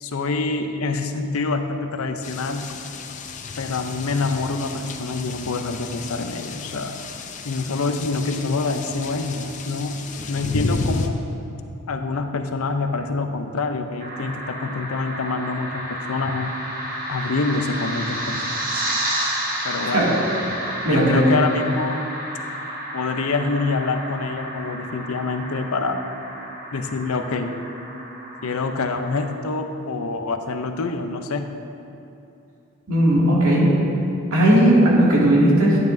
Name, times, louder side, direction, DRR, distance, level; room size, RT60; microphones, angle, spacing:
voice 1, 0.0-2.7 3.6-7.0 7.5-10.0 10.3-11.2 11.9-16.5 17.1-18.8 19.6-20.1 20.9-22.1 22.9-26.0 26.7-27.5 28.4-31.5, left 3 dB, 80° left, 7 dB, 0.6 m, -26 dB
sound 1, 2.2-11.1, left 3 dB, 35° left, 0.5 m, -32 dB
sound 2, 14.0-29.3, right 1 dB, 40° right, 1.2 m, -31 dB
voice 2, 20.8-21.2 32.9-33.7 34.3-35.8, right 1 dB, 85° right, -5 dB, 2.3 m, -16 dB
11.0 x 9.5 x 2.6 m, 2.7 s
head